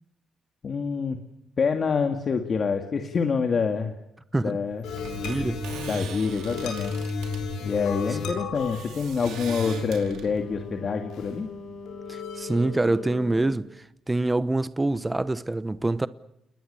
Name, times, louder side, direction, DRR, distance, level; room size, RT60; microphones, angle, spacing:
voice 1, 0.6-1.2 1.6-3.9 4.4-4.8 5.9-6.9 7.6-11.5, left 5 dB, 45° left, 2.3 m, -26 dB
sound 1, 4.7-10.8, right 7 dB, 80° right, 4.7 m, -42 dB
sound 2, 4.8-13.5, left 4 dB, 85° left, 6.6 m, -34 dB
voice 2, 5.2-5.7 12.1-16.1, right 2 dB, 15° right, 0.9 m, -26 dB
29.0 x 21.0 x 7.0 m
cardioid pair, 90°, 0 cm